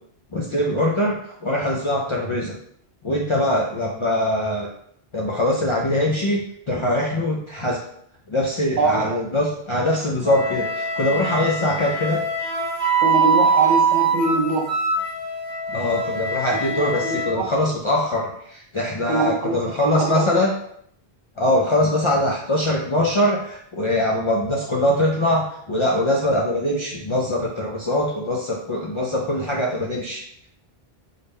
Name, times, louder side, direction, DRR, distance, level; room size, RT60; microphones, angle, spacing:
voice 1, 0.3-2.5 3.0-4.7 5.1-6.4 6.7-7.8 8.3-12.2 15.7-20.5 21.4-30.5, left 1 dB, 50° left, -2 dB, 0.3 m, -22 dB
voice 2, 8.8-9.2 13.0-14.7 16.6-17.5 19.1-20.3, right 3 dB, 55° right, 0 dB, 0.6 m, -23 dB
Wind instrument woodwind instrument, 10.2-17.3, right 4 dB, 5° right, 0.8 m, -23 dB
3.9 x 2.1 x 3.4 m, 0.69 s
omnidirectional pair, 1.0 m